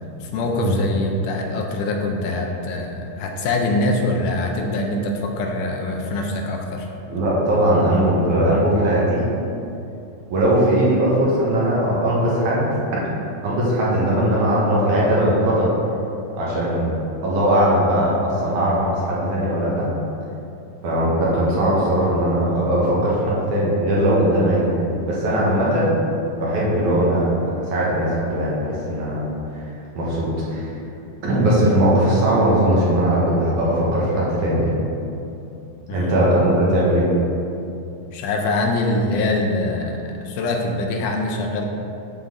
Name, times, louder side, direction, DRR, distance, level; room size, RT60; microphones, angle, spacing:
voice 1, 0.2-6.9 35.9-36.2 38.1-41.7, left 2 dB, 80° left, 2 dB, 2.1 m, -24 dB
voice 2, 7.1-9.2 10.3-13.0 13.4-15.7 16.4-16.9 17.2-19.9 20.8-24.7 25.0-26.0 26.3-27.3 27.7-29.7 30.0-30.7 31.2-34.7 35.9-37.1, right 1 dB, 65° right, -6 dB, 2.6 m, -19 dB
11.5 x 3.9 x 3.7 m, 2.7 s
omnidirectional pair, 3.7 m